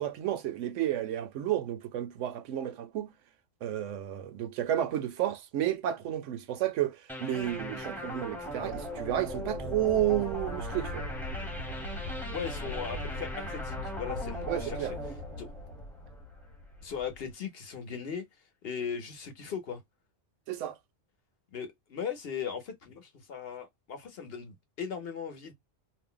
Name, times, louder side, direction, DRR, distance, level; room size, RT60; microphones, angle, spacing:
voice 1, 0.0-3.1 3.6-11.1 14.5-14.9 20.5-20.8, right 12 dB, 75° right, 0.9 m, -31 dB
sound 1, 7.1-16.4, equal, ahead, 0.6 m, -40 dB
sound 2, 7.3-17.3, left 1 dB, 85° left, 1.0 m, -41 dB
voice 2, 12.3-15.0 15.4-15.5 16.8-18.3 18.6-19.8 21.5-25.5, left 7 dB, 55° left, 1.0 m, -38 dB
2.6 x 2.1 x 3.6 m
omnidirectional pair, 1.3 m